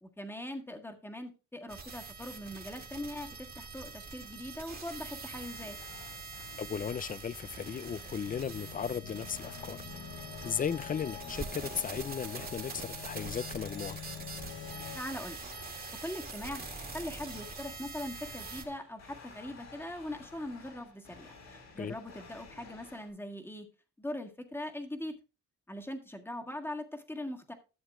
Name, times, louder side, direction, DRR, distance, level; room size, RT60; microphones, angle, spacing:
voice 1, 0.0-5.8 14.9-15.4 16.0-16.6 16.9-23.7 24.0-25.1 25.7-27.5, left 1 dB, 5° left, 1.6 m, -41 dB
sound 1, 1.7-18.6, right 4 dB, 30° right, 1.8 m, -44 dB
sound 2, 5.2-23.1, left 4 dB, 65° left, 4.7 m, -53 dB
voice 2, 6.6-9.8 10.4-14.0 21.8-22.0, left 7 dB, 30° left, 0.4 m, -36 dB
sound 3, 8.3-15.0, left 10 dB, 85° left, 0.9 m, -46 dB
13.0 x 7.2 x 2.4 m
cardioid pair, 90°, 30 cm